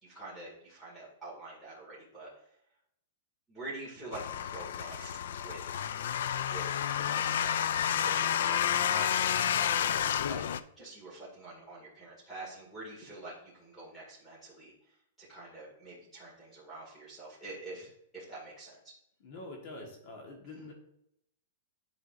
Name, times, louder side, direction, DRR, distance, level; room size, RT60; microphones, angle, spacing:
voice 1, 0.0-2.5 3.5-5.8 6.4-6.8 7.0-7.6 8.0-9.7 10.3-10.4 10.8-18.9 20.5-20.6, right 2 dB, ahead, -7 dB, 2.1 m, -46 dB
sound 1, 4.1-10.6, left 9 dB, 70° left, 0.3 m, -30 dB
voice 2, 19.2-20.7, left 2 dB, 50° left, 1 dB, 1.5 m, -45 dB
9.8 x 4.9 x 2.6 m, 0.77 s
supercardioid pair, 160°, 0 cm